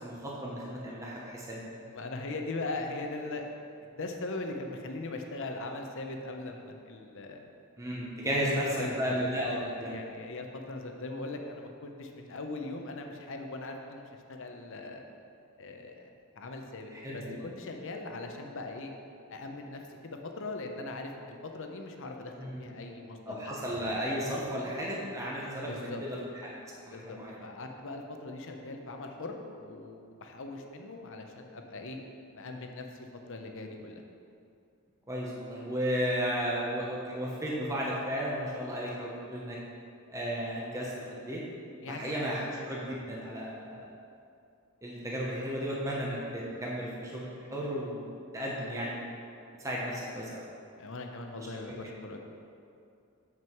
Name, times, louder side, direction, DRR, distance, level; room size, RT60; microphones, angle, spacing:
voice 1, 0.0-1.6 7.8-9.9 16.9-17.4 22.4-22.7 23.3-26.2 26.4-27.4 35.1-39.6 40.1-41.4 41.9-43.8 44.8-49.1 49.6-50.4 51.4-51.8, equal, 15° right, -5 dB, 0.9 m, -34 dB
voice 2, 1.8-3.5 3.9-7.4 8.1-9.1 9.4-15.0 15.6-16.1 16.4-18.9 19.3-23.5 25.7-26.0 26.9-32.0 32.3-34.0 41.8-42.1 42.5-42.6 50.8-52.2, left 2 dB, 60° left, 3 dB, 0.8 m, -40 dB
7.5 x 6.1 x 4.5 m, 2.5 s
head